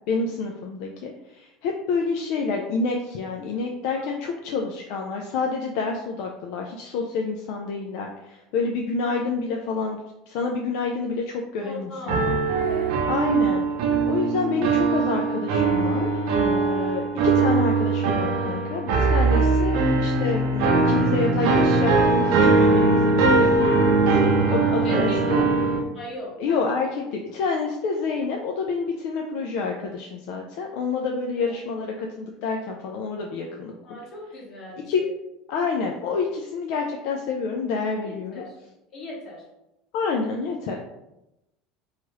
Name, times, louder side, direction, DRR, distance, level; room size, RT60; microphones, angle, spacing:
voice 1, 0.1-10.0 10.3-12.3 13.1-13.6 14.1-16.1 16.4-25.4 26.4-34.0 34.9-35.0 35.5-38.4 39.9-40.8, left 4 dB, 65° left, 1 dB, 0.3 m, -28 dB
voice 2, 11.6-12.9 22.9-23.0 24.8-25.2 25.9-26.6 30.7-30.8 31.5-31.6 33.8-35.1 38.0-38.6 38.9-39.4, left 2 dB, 40° left, -5 dB, 1.3 m, -38 dB
sound 1, 12.1-25.8, right 3 dB, 70° right, 0.5 m, -21 dB
3.0 x 2.3 x 3.0 m, 0.91 s
supercardioid pair, 130°, 0 cm